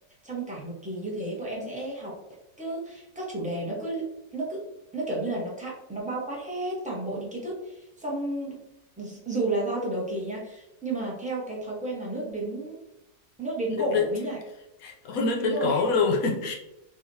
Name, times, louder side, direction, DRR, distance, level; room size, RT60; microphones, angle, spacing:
voice 1, 0.2-2.1 2.6-4.0 4.3-4.6 4.9-8.6 9.0-12.8 13.4-14.4 15.4-15.8, right 2 dB, 10° right, -5 dB, 0.5 m, -32 dB
voice 2, 13.7-14.1 14.8-16.6, left 4 dB, 70° left, 1 dB, 1.0 m, -25 dB
4.0 x 2.4 x 2.6 m, 0.93 s
omnidirectional pair, 1.7 m